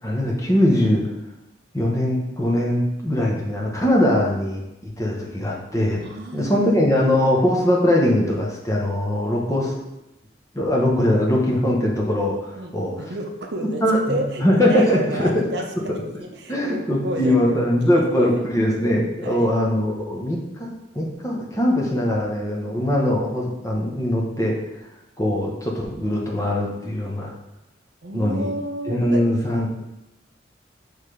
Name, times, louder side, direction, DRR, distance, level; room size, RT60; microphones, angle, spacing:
voice 1, 0.0-1.1 1.7-6.0 6.3-9.8 10.5-13.0 13.8-15.5 16.5-24.9 25.2-27.3 28.1-28.5 28.9-29.7, left 1 dB, 15° left, -2 dB, 1.0 m, -21 dB
voice 2, 6.0-6.9 12.6-13.8 14.1-15.7 15.9-18.4 19.2-19.5 28.0-29.2, right 1 dB, 60° right, 3 dB, 0.7 m, -31 dB
6.5 x 3.3 x 5.0 m, 0.91 s
head